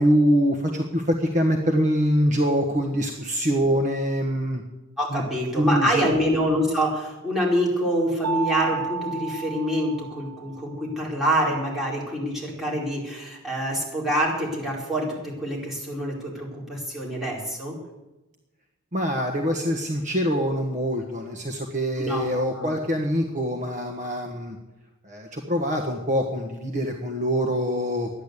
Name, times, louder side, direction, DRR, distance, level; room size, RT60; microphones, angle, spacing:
voice 1, 0.0-4.6 5.1-5.2 5.5-6.1 18.9-24.6 25.0-28.1, equal, 35° right, 2 dB, 1.3 m, -24 dB
voice 2, 5.0-17.8 22.0-22.7, equal, ahead, -5 dB, 4.6 m, -26 dB
Mallet percussion, 8.2-10.7, right 6 dB, 90° right, 1.1 m, -32 dB
12.5 x 10.5 x 8.3 m, 1.0 s
head